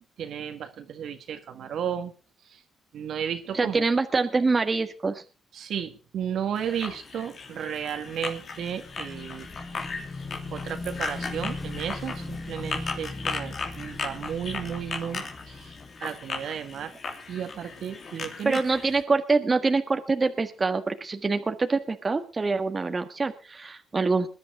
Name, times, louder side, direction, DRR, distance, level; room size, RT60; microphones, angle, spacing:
voice 1, 0.2-2.1 2.5-2.6 2.9-3.8 5.5-9.5 10.5-15.7 16.0-16.9 17.3-18.6, right 8 dB, 70° right, 7 dB, 2.0 m, -33 dB
voice 2, 3.5-5.2 18.4-24.3, right 3 dB, 30° right, 7 dB, 1.6 m, -25 dB
sound 1, 6.5-19.0, left 4 dB, 50° left, 3.0 m, -37 dB
Motorcycle / Engine, 8.1-16.6, left 2 dB, 30° left, 6.1 m, -39 dB
21.5 x 11.0 x 3.8 m, 0.34 s
cardioid pair, 90°, 0 cm